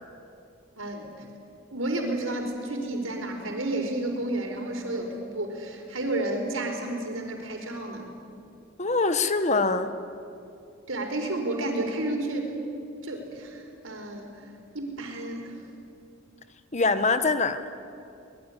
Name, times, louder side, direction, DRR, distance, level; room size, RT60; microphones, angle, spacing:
voice 1, 0.8-1.2 1.7-8.1 10.9-12.5 13.0-14.5 14.7-15.6, right 1 dB, 80° right, 3 dB, 4.6 m, -31 dB
voice 2, 8.8-9.9 16.7-17.6, left 3 dB, 35° left, 11 dB, 1.1 m, -23 dB
24.0 x 21.0 x 10.0 m, 2.6 s
head